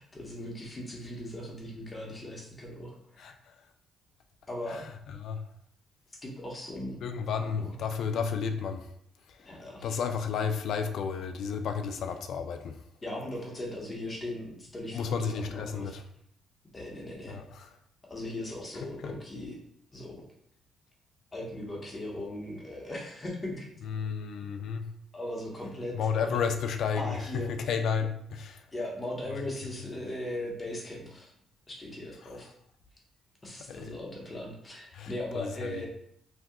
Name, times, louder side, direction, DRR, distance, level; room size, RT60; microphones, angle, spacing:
voice 1, 0.0-3.4 4.5-4.8 6.2-7.0 7.4-7.7 9.5-10.0 13.0-15.9 16.7-17.4 18.0-19.6 19.9-20.2 21.3-23.7 25.1-26.0 26.2-26.4 26.9-27.5 28.7-31.3 31.7-32.5 33.4-35.9, left 1 dB, 25° left, -2 dB, 0.9 m, -38 dB
voice 2, 3.2-3.6 4.7-4.9 5.2-5.4 7.0-8.9 9.3-12.8 14.9-16.0 17.3-17.7 19.0-19.1 23.8-24.9 25.9-28.6 29.3-29.7 33.7-33.8 34.9-35.8, left 6 dB, 70° left, 6 dB, 0.3 m, -32 dB
2.7 x 2.2 x 3.5 m, 0.71 s
cardioid pair, 90°, 0 cm